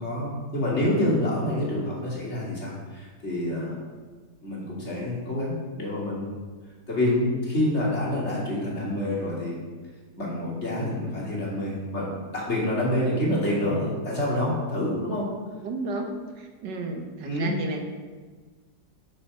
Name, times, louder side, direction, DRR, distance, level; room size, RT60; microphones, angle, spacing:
voice 1, 0.0-3.8 4.4-6.3 6.9-9.6 10.2-12.1 12.3-15.3 17.2-17.5, left 1 dB, 40° left, -5 dB, 2.8 m, -27 dB
voice 2, 15.6-17.8, right 3 dB, 85° right, 4 dB, 1.7 m, -33 dB
8.3 x 6.6 x 6.2 m, 1.4 s
omnidirectional pair, 1.8 m